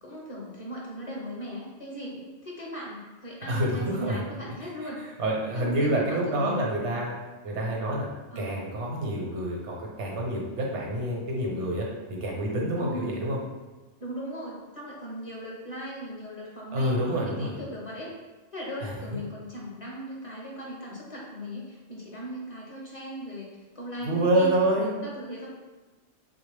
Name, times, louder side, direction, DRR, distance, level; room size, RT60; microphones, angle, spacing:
voice 1, 0.0-5.0 5.6-6.7 8.3-8.6 12.7-13.2 14.0-18.1 18.5-25.5, equal, 35° left, -4 dB, 0.7 m, -38 dB
voice 2, 3.5-4.2 4.8-4.9 5.2-7.1 7.4-8.1 8.4-11.9 12.2-13.4 16.7-17.6 18.8-19.2 24.0-24.9, right 1 dB, 80° right, -2 dB, 1.1 m, -27 dB
3.8 x 2.4 x 3.3 m, 1.2 s
omnidirectional pair, 1.2 m